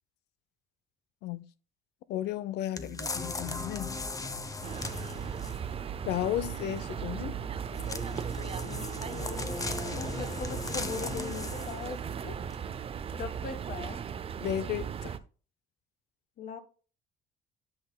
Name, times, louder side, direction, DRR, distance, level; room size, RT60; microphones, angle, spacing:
voice 1, 2.1-3.9 6.1-7.4 14.4-15.2, left 12 dB, 80° left, 0.6 m, -34 dB
sound 1, 2.8-5.7 7.7-11.9 12.5-12.6, left 3 dB, 20° left, 0.8 m, -38 dB
sound 2, 4.6-15.2, right 8 dB, 35° right, 0.5 m, -37 dB
Guitar, 7.0-13.5, left 3 dB, 40° left, 1.5 m, -50 dB
voice 2, 8.6-9.3 9.9-12.4 13.1-14.0 16.4-16.6, left 6 dB, 55° left, 1.3 m, -40 dB
11.0 x 5.9 x 2.2 m
cardioid pair, 110°, 17 cm